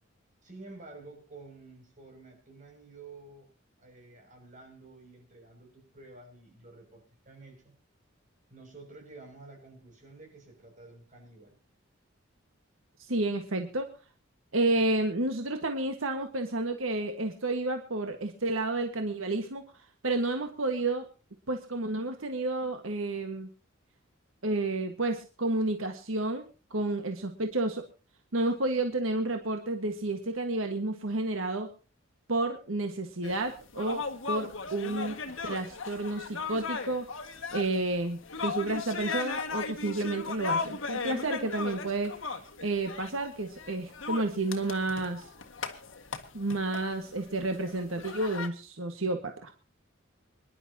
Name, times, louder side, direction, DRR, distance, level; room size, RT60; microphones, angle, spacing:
voice 1, 0.4-3.5 3.8-7.7 8.5-11.6, right 3 dB, 40° right, 2 dB, 6.6 m, -50 dB
voice 2, 13.0-13.9 14.5-19.6 20.0-21.0 21.5-23.5 24.4-27.8 28.3-31.7 32.3-35.2 35.4-37.1 37.5-42.1 42.6-45.3 46.3-49.5, right 2 dB, 90° right, 5 dB, 1.6 m, -31 dB
sound 1, 33.2-48.5, left 5 dB, 80° left, 1.9 m, -37 dB
25.5 x 11.0 x 2.9 m, 0.34 s
head